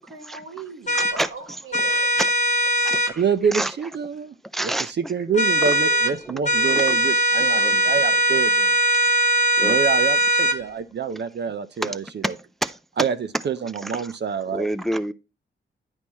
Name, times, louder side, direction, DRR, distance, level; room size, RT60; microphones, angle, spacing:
voice 1, 0.1-2.2, right 4 dB, 75° right, 1.5 m, -39 dB
sound 1, 0.9-1.2 1.7-3.1 5.3-6.1 6.4-10.6, right 1 dB, 35° left, 1.2 m, -20 dB
voice 2, 0.9-1.3 1.9-2.3 2.8-3.2 3.5-3.7 4.5-5.1 5.6-7.0 7.6-7.8 9.6-9.8 11.1-11.2 11.8-12.3 12.6-12.8 13.8-14.1 14.5-15.1, right 1 dB, ahead, 0.5 m, -29 dB
voice 3, 3.2-4.3 4.6-4.7 5.0-8.8 9.6-12.0 13.0-13.2 13.4-14.7, right 6 dB, 55° right, 0.6 m, -26 dB
9.8 x 4.4 x 4.2 m
supercardioid pair, 50°, 21 cm